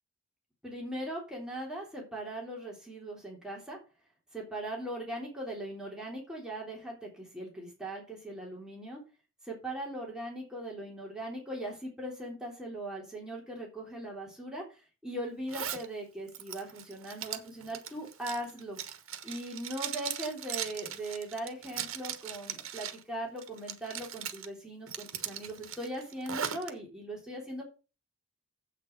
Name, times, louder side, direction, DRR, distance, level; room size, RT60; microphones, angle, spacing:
voice 1, 0.6-3.8 4.3-9.0 9.4-14.6 15.0-18.8 19.2-27.6, right 1 dB, 5° right, -3 dB, 3.5 m, -39 dB
Zipper (clothing), 15.5-15.9 16.3-23.0 23.4-24.5 24.9-26.7, right 9 dB, 75° right, 1.3 m, -39 dB
8.2 x 6.7 x 6.0 m, 0.32 s
head